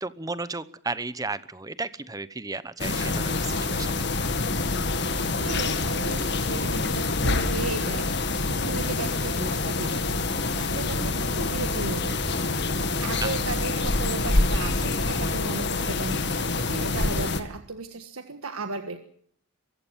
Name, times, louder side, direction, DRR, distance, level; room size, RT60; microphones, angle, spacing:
voice 1, 0.0-4.1 13.2-13.3, right 3 dB, 15° right, 15 dB, 0.9 m, -34 dB
sound 1, 2.8-17.4, left 3 dB, 55° left, 2.0 m, -26 dB
voice 2, 5.0-12.3 12.8-19.0, right 3 dB, 90° right, 7 dB, 1.6 m, -36 dB
23.5 x 15.5 x 7.4 m, 0.63 s
head